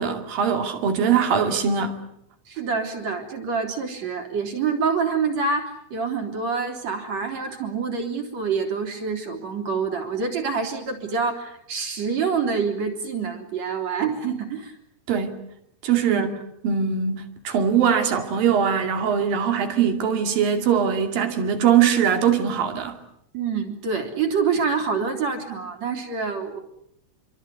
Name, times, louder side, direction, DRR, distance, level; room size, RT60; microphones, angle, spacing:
voice 1, 0.0-2.0 15.1-15.4 15.8-16.3 16.6-23.0, right 7 dB, 70° right, 4.3 m, -21 dB
voice 2, 2.5-14.8 15.9-16.3 23.3-26.6, right 5 dB, 45° right, 4.6 m, -26 dB
27.5 x 24.0 x 8.4 m
omnidirectional pair, 4.2 m